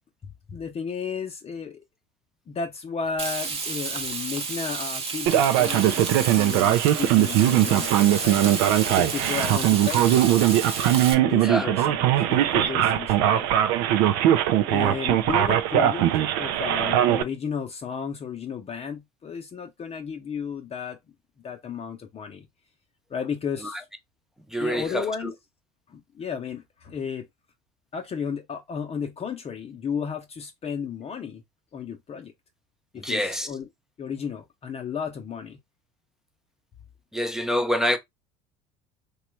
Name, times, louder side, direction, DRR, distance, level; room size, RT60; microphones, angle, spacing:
voice 1, 0.5-1.8 2.5-8.5 8.9-10.3 10.8-13.5 14.6-21.0 21.4-22.5 23.1-23.8 24.6-25.3 25.9-27.3 27.9-31.4 31.7-32.3 32.9-33.7 34.0-35.6, left 6 dB, 30° left, 0.7 m, -33 dB
Frying (food), 3.2-11.1, right 4 dB, 30° right, 0.9 m, -31 dB
Male speech man speaking, 5.3-17.2, right 12 dB, 70° right, 0.5 m, -21 dB
voice 2, 11.4-11.7 23.6-23.8 24.5-25.3 33.0-33.5 37.1-38.0, equal, ahead, 0.5 m, -26 dB
3.0 x 2.3 x 3.1 m
hypercardioid pair, 75°, 20 cm